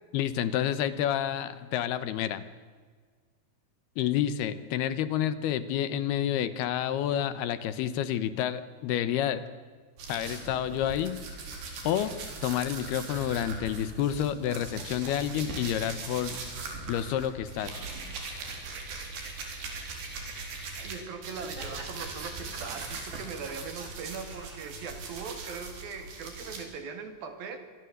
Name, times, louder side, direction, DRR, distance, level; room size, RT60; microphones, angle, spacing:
voice 1, 0.1-2.4 4.0-9.4 10.1-11.2 11.8-12.1 12.4-16.4 16.9-17.8, left 10 dB, 75° left, 14 dB, 3.0 m, -29 dB
sound 1, 10.0-20.9 21.2-26.6, right 3 dB, 85° right, 6.2 m, -40 dB
Laughter, 20.7-25.9, right 3 dB, 30° right, 3.5 m, -48 dB
voice 2, 20.8-27.6, right 5 dB, 65° right, 8 dB, 3.9 m, -40 dB
26.5 x 22.5 x 8.0 m, 1.5 s
omnidirectional pair, 4.8 m